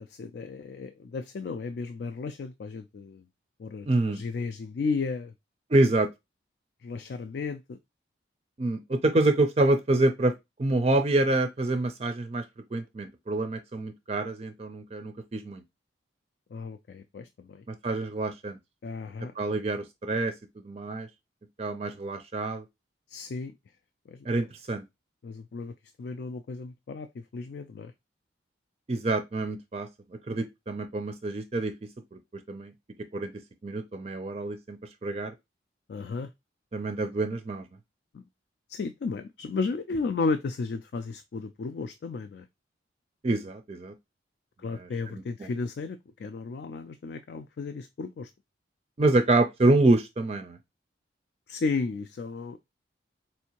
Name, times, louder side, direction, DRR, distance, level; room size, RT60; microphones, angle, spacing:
voice 1, 0.0-3.2 3.6-5.3 6.8-7.8 16.5-17.6 18.8-19.3 23.1-23.5 24.1-24.3 25.2-27.9 35.9-36.3 38.1-38.2 38.7-42.5 44.6-48.3 51.5-52.6, left 4 dB, 60° left, 0.3 m, -34 dB
voice 2, 3.9-4.2 5.7-6.1 8.6-10.3 10.6-12.4 12.7-15.6 17.7-18.6 19.4-20.3 20.6-21.1 21.6-22.6 24.3-24.8 28.9-29.9 30.3-31.7 32.1-32.2 32.5-32.7 33.1-33.3 33.6-35.3 36.7-37.6 43.2-43.9 44.7-45.5 49.0-50.6, right 2 dB, 35° right, 0.4 m, -26 dB
4.3 x 2.7 x 2.8 m
head